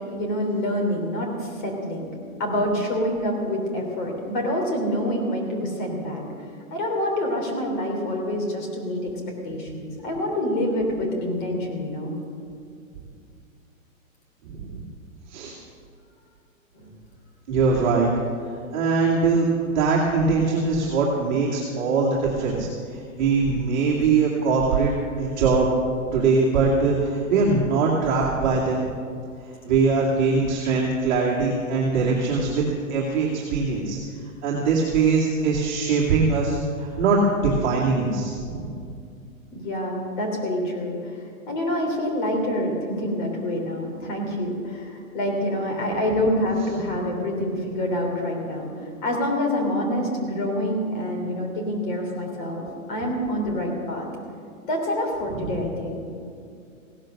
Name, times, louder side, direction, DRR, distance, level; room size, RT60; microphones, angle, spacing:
voice 1, 0.1-2.1 2.4-6.2 6.7-9.1 9.4-12.1 16.7-16.9 39.5-54.1 54.7-56.0, left 1 dB, 35° left, 1 dB, 3.3 m, -26 dB
voice 2, 14.4-14.8 15.3-15.6 17.5-18.1 18.7-19.5 19.7-25.7 26.1-28.8 29.6-32.6 32.9-34.0 34.4-38.8 55.3-55.6, right 4 dB, 35° right, -6 dB, 2.3 m, -22 dB
16.5 x 12.0 x 6.5 m, 2.4 s
hypercardioid pair, 170°, 41 cm